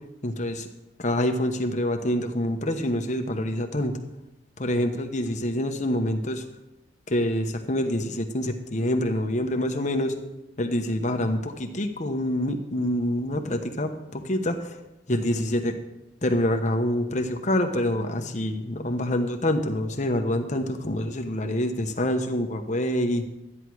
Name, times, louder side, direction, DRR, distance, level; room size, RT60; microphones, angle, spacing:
voice 1, 0.2-0.7 1.0-3.9 4.6-6.4 7.1-10.1 10.6-14.8 15.1-15.7 16.2-23.3, left 1 dB, 40° left, 6 dB, 1.1 m, -26 dB
13.0 x 9.9 x 4.7 m, 0.96 s
head